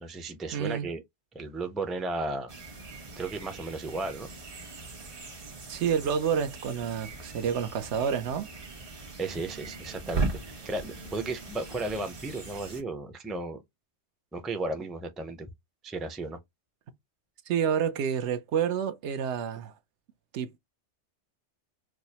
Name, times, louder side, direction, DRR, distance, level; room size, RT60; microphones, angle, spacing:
voice 1, 0.0-1.0 1.3-2.5 3.2-4.3 9.2-13.6 14.3-15.5 15.8-16.4, right 2 dB, ahead, 0.3 m, -34 dB
voice 2, 0.5-0.9 5.7-8.5 17.5-19.7 20.3-20.6, right 7 dB, 80° right, 0.9 m, -29 dB
sound 1, 2.5-12.8, right 3 dB, 55° right, 1.3 m, -39 dB
4.7 x 2.0 x 2.8 m
omnidirectional pair, 1.2 m